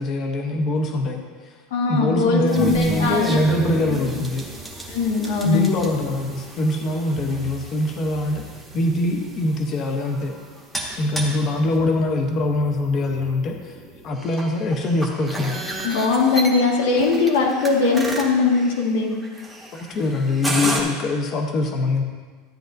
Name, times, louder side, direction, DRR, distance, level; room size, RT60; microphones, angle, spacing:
voice 1, 0.0-1.5 1.9-4.5 5.4-8.4 8.7-10.4 11.0-13.8 14.0-15.6 19.7-22.0, left 2 dB, 25° left, 4 dB, 0.8 m, -23 dB
voice 2, 1.7-3.4 4.9-5.8 15.8-19.1, left 4 dB, 75° left, 0 dB, 1.4 m, -20 dB
sound 1, 2.5-20.8, right 1 dB, ahead, 1.0 m, -33 dB
13.0 x 9.1 x 2.6 m, 1.5 s
supercardioid pair, 180°, 0 cm